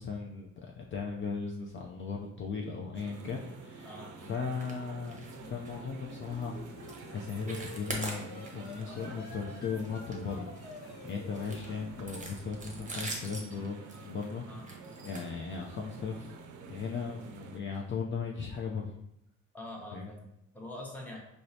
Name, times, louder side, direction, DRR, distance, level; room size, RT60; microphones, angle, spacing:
voice 1, 0.0-3.9 4.2-6.6 7.1-10.5 10.8-14.5 15.0-16.3 16.7-19.0 19.9-20.1, left 5 dB, 40° left, -1 dB, 0.4 m, -37 dB
sound 1, 2.9-17.6, right 5 dB, 80° right, 0.5 m, -49 dB
voice 2, 3.8-4.3 11.3-11.5 14.4-14.7 19.5-21.2, left 1 dB, 5° left, -1 dB, 0.8 m, -45 dB
sound 2, 4.5-4.8 5.0-5.4 5.6-5.8 6.3-6.5 6.8-7.0 7.3-8.7 9.1-9.3 9.7-10.8 11.3-15.9 16.7-16.8 17.2-17.3 17.7-17.8, right 2 dB, 25° right, 0.8 m, -43 dB
sound 3, 5.3-13.0, left 2 dB, 65° left, 1.1 m, -50 dB
4.6 x 2.1 x 2.7 m, 0.82 s
cardioid pair, 90°, 30 cm